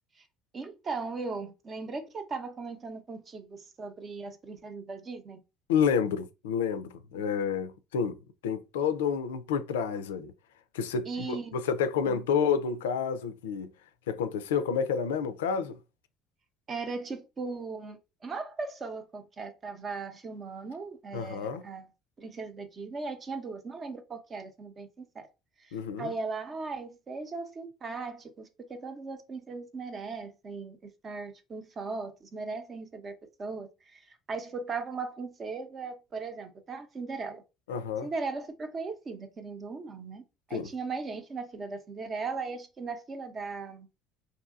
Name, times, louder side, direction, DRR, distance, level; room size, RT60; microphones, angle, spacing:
voice 1, 0.5-5.4 11.1-11.6 12.1-12.2 16.7-21.8 22.2-25.3 26.0-34.0 34.3-37.4 38.0-43.9, right 4 dB, 40° right, 0.7 m, -38 dB
voice 2, 5.7-8.2 8.4-10.3 10.7-13.7 14.1-15.8 21.1-21.6 25.7-26.1 37.7-38.1 40.5-40.7, left 6 dB, 85° left, 0.3 m, -29 dB
2.7 x 2.6 x 2.4 m
hypercardioid pair, 70°, 0 cm